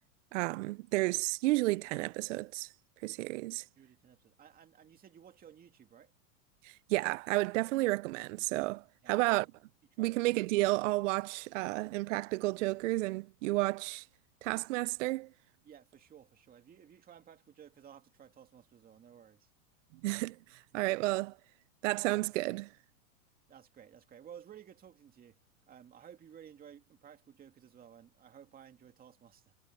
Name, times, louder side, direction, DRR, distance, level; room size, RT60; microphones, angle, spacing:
voice 1, 0.3-2.7 3.0-3.7 6.6-9.5 10.0-14.1 14.4-15.3 20.0-21.4 21.8-22.7, right 20 dB, 60° right, 0.5 m, -32 dB
voice 2, 3.8-6.1 9.0-9.5 9.9-10.4 15.6-19.5 23.5-25.4 25.7-29.5, right 9 dB, 20° right, 2.4 m, -55 dB
supercardioid pair, 140°, 42 cm